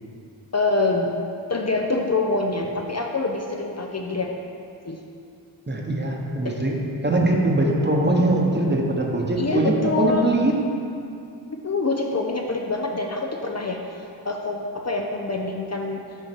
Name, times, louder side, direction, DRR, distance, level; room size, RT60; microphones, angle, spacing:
voice 1, 0.5-1.1 1.5-4.3 4.9-5.0 6.4-6.6 9.4-10.3 11.5-13.8 14.2-16.0, left 3 dB, 35° left, 1 dB, 0.6 m, -25 dB
voice 2, 5.7-10.6, right 2 dB, 25° right, 0 dB, 1.0 m, -22 dB
6.4 x 3.9 x 6.0 m, 2.5 s
cardioid pair, 50°, 46 cm